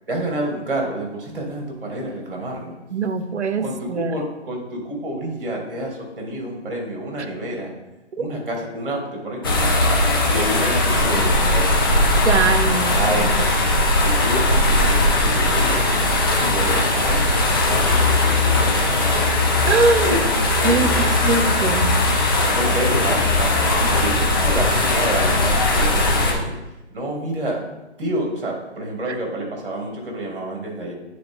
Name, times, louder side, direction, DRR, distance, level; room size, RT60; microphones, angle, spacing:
voice 1, 0.1-2.7 3.6-7.7 8.2-9.9 10.3-11.7 12.9-13.6 14.0-19.3 20.0-21.1 22.5-26.5 26.9-27.6 28.0-30.9, right 1 dB, 50° right, 0 dB, 2.3 m, -29 dB
voice 2, 2.9-4.1 8.2-8.3 12.2-13.3 19.6-20.1 20.6-21.0 21.2-22.0, right 4 dB, 80° right, 9 dB, 0.8 m, -22 dB
sound 1, 9.4-26.3, left 2 dB, 20° left, 0.7 m, -19 dB
9.5 x 3.9 x 3.7 m, 1.0 s
hypercardioid pair, 160°, 34 cm